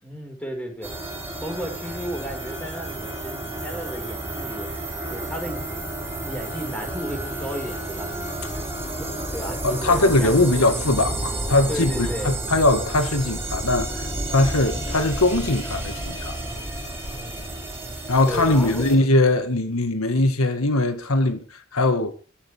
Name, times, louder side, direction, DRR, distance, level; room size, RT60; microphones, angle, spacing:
voice 1, 0.0-0.9 1.4-4.7 5.1-5.8 6.2-8.1 8.8-10.9 11.7-12.3 17.1-17.5 18.2-18.9, equal, 5° left, 5.1 m, -34 dB
sound 1, 0.8-19.0, right 1 dB, 10° right, 7.1 m, -31 dB
voice 2, 9.6-16.4 18.1-22.1, left 2 dB, 85° left, 1.8 m, -21 dB
21.5 x 14.0 x 3.5 m
head